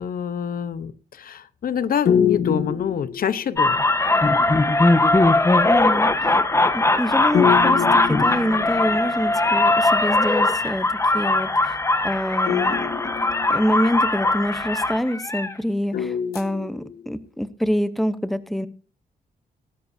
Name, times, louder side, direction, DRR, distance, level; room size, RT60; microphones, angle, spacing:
voice 1, 0.0-3.9, left 7 dB, 70° left, 14 dB, 0.9 m, -26 dB
sound 1, 2.1-3.8 7.3-9.2 12.5-14.0 15.9-17.1, left 8 dB, 85° left, 1.3 m, -25 dB
sound 2, 3.6-15.5, left 2 dB, 20° left, 1.1 m, -20 dB
voice 2, 5.6-6.4 6.7-11.8 12.0-13.0 13.5-18.7, equal, ahead, 12 dB, 0.9 m, -26 dB
18.5 x 13.0 x 2.7 m, 0.36 s
wide cardioid pair, 125°, 16 cm